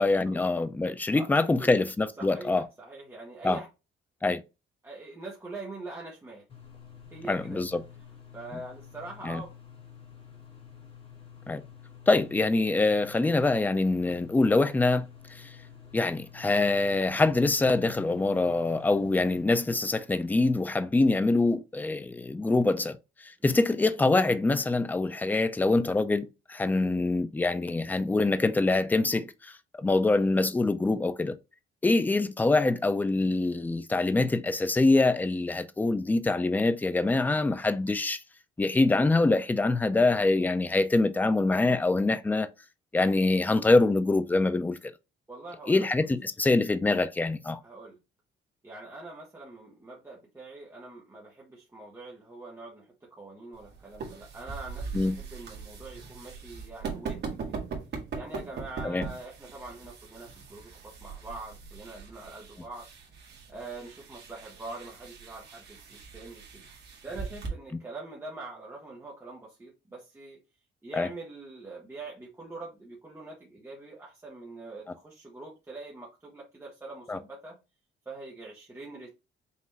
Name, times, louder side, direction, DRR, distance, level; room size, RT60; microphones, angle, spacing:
voice 1, 0.0-2.6 3.4-3.6 4.2-4.4 7.3-7.8 9.2-9.4 11.5-11.6 12.1-15.1 15.4-15.5 15.9-23.0 23.2-31.3 31.8-38.2 38.6-42.5 42.9-44.8 45.7-47.6 54.9-55.1 58.8-59.0 71.0-71.1 77.1-77.2, left 2 dB, 10° left, 0.3 m, -25 dB
voice 2, 2.2-3.7 4.8-6.4 7.1-7.6 8.3-9.5 45.3-45.9 47.6-48.0 48.6-57.4 58.2-62.9 63.5-66.7 67.0-70.4 70.8-77.6 78.1-79.1, right 2 dB, 10° right, 0.9 m, -43 dB
sound 1, 6.5-19.4, left 8 dB, 25° left, 1.2 m, -50 dB
sound 2, 53.5-67.5, right 5 dB, 55° right, 1.4 m, -41 dB
5.4 x 2.5 x 3.1 m
cardioid pair, 170°, 21 cm